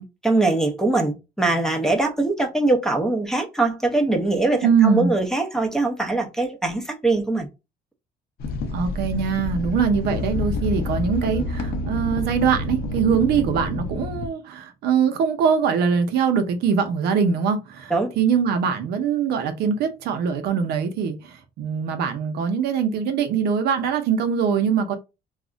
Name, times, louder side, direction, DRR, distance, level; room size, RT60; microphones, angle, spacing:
voice 1, 0.0-7.5 17.9-18.1, right 2 dB, 5° left, 0.6 m, -22 dB
voice 2, 4.6-5.1 8.7-25.0, right 6 dB, 75° right, 0.6 m, -22 dB
sound 1, 8.4-14.3, left 3 dB, 65° left, 0.7 m, -28 dB
2.4 x 2.1 x 3.7 m
cardioid pair, 110°, 17 cm